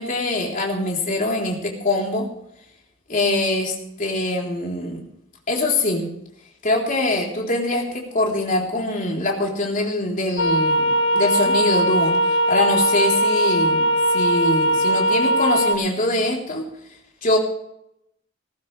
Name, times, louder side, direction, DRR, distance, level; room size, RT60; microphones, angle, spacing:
voice 1, 0.0-2.3 3.1-5.0 5.5-6.1 6.6-16.6 17.2-17.4, left 2 dB, 40° left, -1 dB, 3.6 m, -23 dB
sound 1, 10.4-15.8, right 1 dB, 65° left, 1.0 m, -19 dB
18.5 x 14.5 x 3.3 m, 0.80 s
head